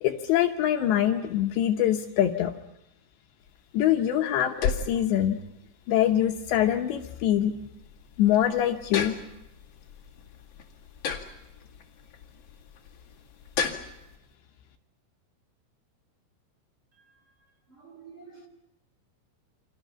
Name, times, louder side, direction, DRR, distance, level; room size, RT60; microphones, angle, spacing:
voice 1, 0.0-2.5 3.7-5.4 5.9-7.6 8.2-9.2, left 11 dB, 75° left, 4 dB, 2.9 m, -24 dB
sound 1, 3.4-14.2, left 6 dB, 45° left, 2.1 m, -36 dB
voice 2, 17.7-18.5, right 5 dB, 35° right, 1 dB, 2.5 m, -48 dB
29.5 x 25.5 x 5.8 m, 0.90 s
omnidirectional pair, 5.8 m